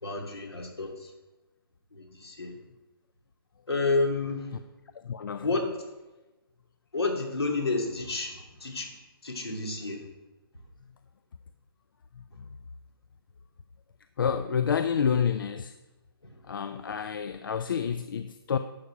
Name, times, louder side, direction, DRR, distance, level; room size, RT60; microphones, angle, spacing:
voice 1, 0.0-1.1 1.9-2.5 3.7-4.5 5.4-5.7 6.9-8.9 9.2-10.0, left 3 dB, 90° left, 1 dB, 2.6 m, -30 dB
voice 2, 5.0-5.5 14.2-15.7 16.5-18.6, left 7 dB, 60° left, 10 dB, 0.5 m, -28 dB
11.5 x 7.1 x 4.9 m, 1.1 s
hypercardioid pair, 150°, 13 cm